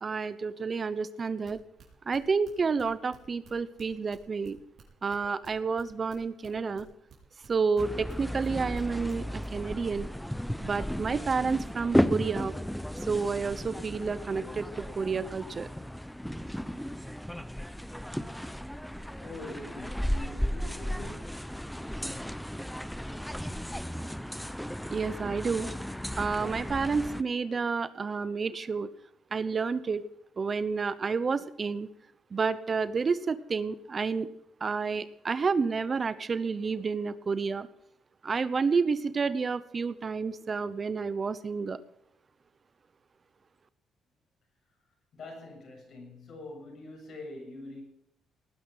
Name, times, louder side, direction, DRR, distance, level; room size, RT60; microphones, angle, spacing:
voice 1, 0.0-1.6 2.1-4.6 5.0-6.9 7.5-10.1 10.6-12.5 13.0-15.7 24.9-25.7 26.2-28.9 29.3-30.1 30.4-31.9 32.3-34.3 34.6-37.7 38.2-41.8, right 5 dB, 40° right, 0.9 m, -30 dB
sound 1, 1.4-7.2 7.4-8.8 9.1-9.5, right 7 dB, 60° right, 5.0 m, -54 dB
sound 2, 7.8-27.2, equal, 5° left, 0.8 m, -34 dB
voice 2, 19.2-21.4 45.1-47.8, left 2 dB, 60° left, 7.4 m, -44 dB
19.0 x 10.0 x 5.7 m
cardioid pair, 90°, 0 cm